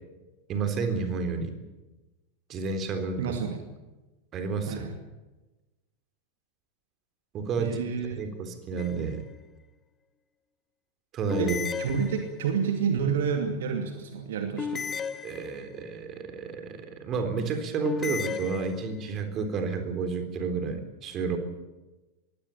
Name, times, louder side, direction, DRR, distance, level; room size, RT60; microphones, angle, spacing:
voice 1, 0.5-1.5 2.5-3.4 4.3-4.9 7.3-9.2 11.1-11.6 15.2-21.4, right 4 dB, 30° right, 7 dB, 3.8 m, -31 dB
voice 2, 3.2-3.6 4.7-4.9 7.6-8.2 11.4-14.9, right 6 dB, 60° right, 5 dB, 2.5 m, -29 dB
sound 1, 8.8-9.3 11.3-12.6 14.6-15.9 17.8-19.1, left 6 dB, 20° left, 1.1 m, -35 dB
22.0 x 17.5 x 8.7 m, 1.1 s
figure-of-eight pair, 90°, 0 cm